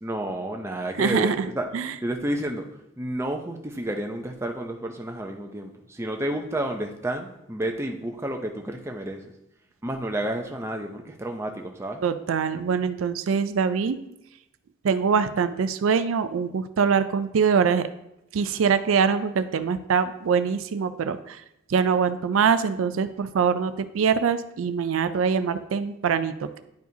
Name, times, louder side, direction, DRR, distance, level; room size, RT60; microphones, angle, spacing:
voice 1, 0.0-1.7 2.0-9.3 9.8-12.0, right 1 dB, 15° right, 3 dB, 0.6 m, -30 dB
voice 2, 1.0-1.9 12.0-14.0 14.8-17.9 18.3-21.4 21.7-26.6, right 6 dB, 80° right, 11 dB, 0.4 m, -24 dB
10.5 x 4.7 x 2.7 m, 0.84 s
head